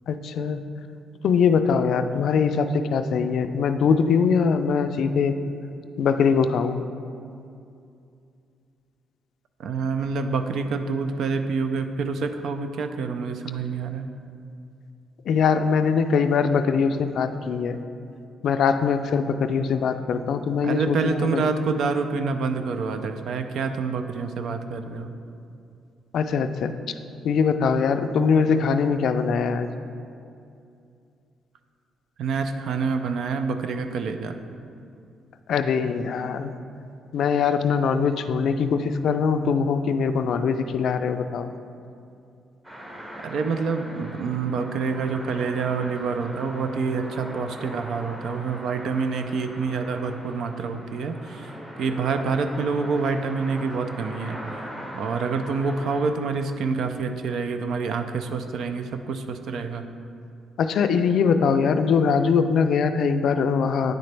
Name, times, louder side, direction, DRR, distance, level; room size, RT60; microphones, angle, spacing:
voice 1, 0.1-0.6 1.2-5.4 6.0-6.8 15.3-17.8 18.4-21.5 26.1-26.7 27.2-29.7 35.5-36.5 37.1-41.5 60.6-63.9, left 6 dB, 70° left, 9 dB, 0.3 m, -22 dB
voice 2, 9.6-14.1 20.6-25.1 32.2-34.4 43.2-51.5 51.8-54.4 54.9-59.8, right 4 dB, 70° right, 7 dB, 0.4 m, -27 dB
sound 1, 42.6-56.0, equal, 25° right, 1.4 m, -40 dB
9.5 x 3.8 x 3.3 m, 2.5 s
cardioid pair, 90°, 0 cm